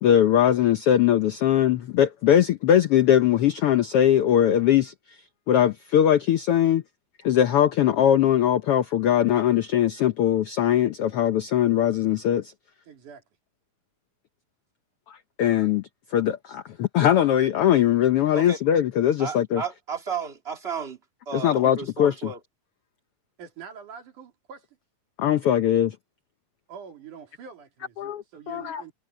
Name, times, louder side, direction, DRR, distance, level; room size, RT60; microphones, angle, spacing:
voice 1, 0.0-4.9 5.5-6.8 7.2-12.5 15.1-19.6 21.3-22.3 25.2-25.9 28.0-28.8, left 10 dB, 80° left, 1.3 m, -21 dB
voice 2, 12.9-13.2 23.4-24.6 26.7-28.9, right 7 dB, 70° right, 4.3 m, -44 dB
voice 3, 19.2-21.0 21.3-22.4, right 6 dB, 20° right, 2.8 m, -33 dB
omnidirectional pair, 3.7 m